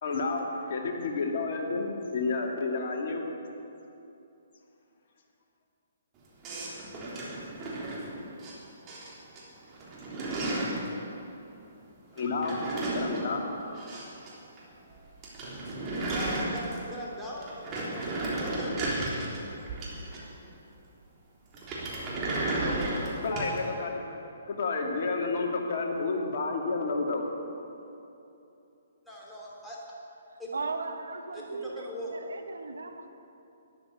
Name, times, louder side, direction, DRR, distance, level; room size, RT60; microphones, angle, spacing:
voice 1, 0.0-3.2 12.1-12.6 12.9-13.4 23.2-24.0 24.5-27.3, left 3 dB, 55° left, 0 dB, 2.6 m, -30 dB
sound 1, 6.4-8.5 8.9-9.4 9.7-10.9 12.2-14.3 14.6-14.7 15.0-15.1 15.2-17.0 17.4-20.5 21.5-23.6, right 2 dB, 25° right, 3.5 m, -33 dB
voice 2, 16.1-18.9 29.0-29.8 30.4-30.5 31.3-32.1, equal, ahead, -6 dB, 3.2 m, -40 dB
voice 3, 30.3-33.1, right 4 dB, 80° right, 7 dB, 1.4 m, -37 dB
13.0 x 10.5 x 8.5 m, 2.8 s
hypercardioid pair, 135°, 0 cm